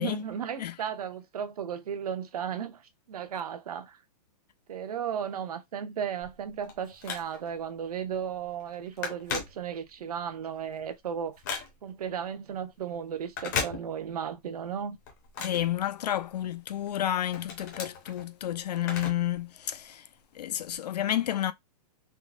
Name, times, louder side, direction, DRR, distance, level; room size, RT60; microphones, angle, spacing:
voice 1, 0.0-4.0 4.7-11.4 11.8-15.0, right 8 dB, 70° right, 0.7 m, -35 dB
Telephone, 6.2-7.6 8.1-8.3 8.6-10.1 10.5-12.0 13.2-14.3 14.6-16.4 16.9-19.4 19.7-19.8 20.6-20.7, left 6 dB, 25° left, 0.7 m, -37 dB
voice 2, 15.4-20.1 20.3-21.5, left 12 dB, 80° left, 0.4 m, -30 dB
3.6 x 2.1 x 2.4 m
hypercardioid pair, 180°, 20 cm